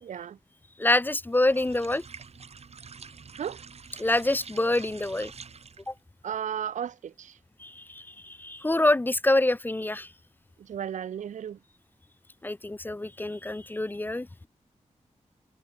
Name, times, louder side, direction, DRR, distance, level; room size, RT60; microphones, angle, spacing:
voice 1, 0.0-0.4 3.4-3.7 6.2-7.4 10.6-11.6, right 9 dB, 80° right, 0.5 m, -34 dB
voice 2, 0.8-2.0 4.0-5.3 5.9-6.0 7.6-10.1 12.4-14.5, left 2 dB, 15° left, 0.4 m, -26 dB
sound 1, 1.3-6.0, right 5 dB, 55° right, 1.3 m, -47 dB
wide cardioid pair, 80°, 12 cm